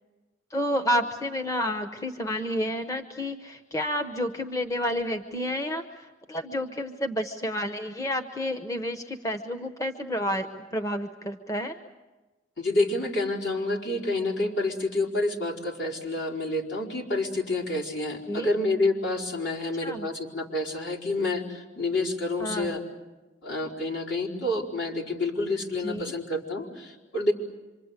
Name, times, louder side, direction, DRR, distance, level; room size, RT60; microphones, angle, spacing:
voice 1, 0.5-11.8 18.3-18.5 19.8-20.1 22.4-22.8 25.8-26.1, equal, 15° left, 7 dB, 0.9 m, -30 dB
voice 2, 12.6-22.8 23.4-27.3, left 2 dB, 65° left, -3 dB, 4.9 m, -28 dB
26.5 x 25.0 x 8.2 m, 1.2 s
head